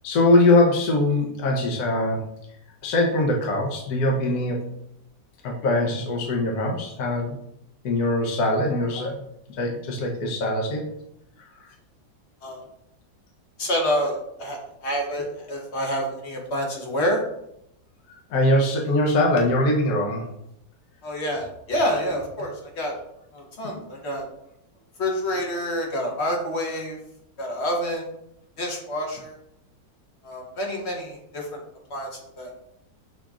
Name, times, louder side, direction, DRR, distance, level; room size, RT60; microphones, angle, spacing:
voice 1, 0.0-2.2 2.8-4.6 5.4-7.4 7.8-9.2 9.6-10.8 18.1-20.2 23.6-23.8, left 1 dB, 70° left, 0 dB, 1.1 m, -22 dB
voice 2, 13.6-17.2 21.0-22.9 23.3-24.3 25.0-27.0 27.4-28.1 28.6-29.3 30.2-31.6 31.9-32.5, equal, 45° left, 0 dB, 1.0 m, -28 dB
6.0 x 2.9 x 2.3 m, 0.78 s
omnidirectional pair, 1.9 m